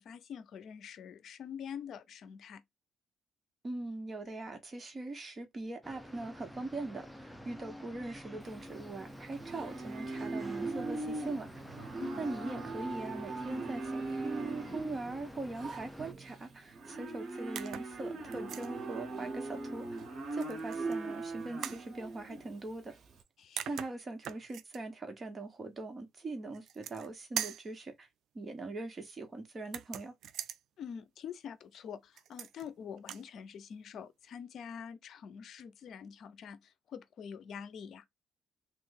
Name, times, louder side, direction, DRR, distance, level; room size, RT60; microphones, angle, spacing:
voice 1, 0.0-2.6 12.0-12.3 23.4-23.7 30.8-38.0, left 7 dB, 70° left, 0.6 m, -46 dB
voice 2, 3.6-11.5 12.2-20.0 20.3-22.9 23.7-28.1 28.3-30.1, right 2 dB, 30° right, 1.3 m, -41 dB
sound 1, 5.8-16.1, equal, ahead, 0.6 m, -49 dB
Livestock farm animals working animals, 8.4-23.2, right 3 dB, 55° right, 1.3 m, -40 dB
sound 2, 17.5-17.9 18.3-18.7 20.4-21.0 21.6-21.8 23.2-23.3 23.6-24.8 26.5-27.1 27.4-27.7 29.6-30.6 32.2-32.7 33.0-33.3, right 10 dB, 75° right, 0.3 m, -41 dB
3.2 x 2.6 x 4.0 m
cardioid pair, 90°, 0 cm